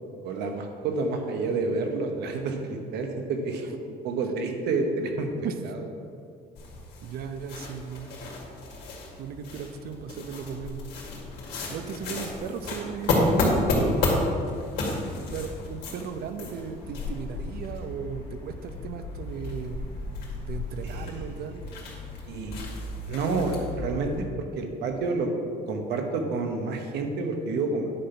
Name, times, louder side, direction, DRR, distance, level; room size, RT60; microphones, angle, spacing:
voice 1, 0.2-5.3 5.6-5.8 20.8-21.2 22.3-22.6 23.1-24.1 24.6-25.3 25.7-27.9, right 3 dB, 80° right, 4 dB, 1.1 m, -29 dB
sound 1, 6.5-24.2, left 2 dB, 80° left, 2.1 m, -31 dB
voice 2, 7.0-8.1 9.2-10.9 11.7-13.4 13.8-14.3 15.3-19.8 20.4-21.6, right 6 dB, 65° right, 9 dB, 0.7 m, -36 dB
9.9 x 4.1 x 5.7 m, 2.4 s
cardioid pair, 110°, 17 cm